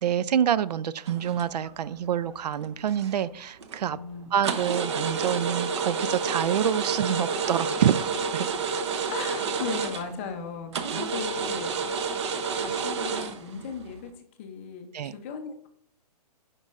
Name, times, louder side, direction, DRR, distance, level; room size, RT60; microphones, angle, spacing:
voice 1, 0.0-4.0 4.3-8.5 10.9-11.0 14.9-15.1, right 9 dB, 75° right, 17 dB, 0.4 m, -27 dB
sound 1, 1.1-1.9 2.3-3.2 3.6-3.9 4.4-10.3 10.7-14.0, right 5 dB, 45° right, 0.7 m, -30 dB
voice 2, 3.9-4.3 9.1-12.0 12.5-14.1 14.4-15.7, left 6 dB, 20° left, 6 dB, 0.5 m, -37 dB
9.2 x 5.3 x 2.4 m, 0.65 s
hypercardioid pair, 165°, 21 cm